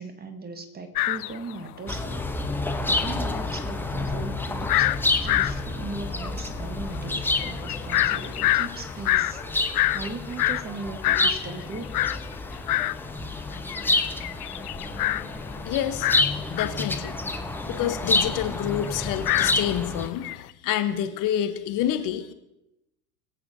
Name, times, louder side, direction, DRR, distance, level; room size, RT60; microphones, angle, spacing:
voice 1, 0.0-2.3 2.8-4.9 5.2-11.9, right 3 dB, 20° right, 6 dB, 1.4 m, -38 dB
sound 1, 1.0-2.2 2.4-2.5 2.8-13.0 13.4-20.4, left 15 dB, 75° left, 0.5 m, -27 dB
sound 2, 1.9-20.1, left 2 dB, 5° left, 0.8 m, -29 dB
voice 2, 15.6-16.1 16.5-17.1 17.7-22.3, left 11 dB, 40° left, 8 dB, 1.0 m, -28 dB
22.0 x 8.3 x 2.7 m, 0.89 s
figure-of-eight pair, 75°, 46 cm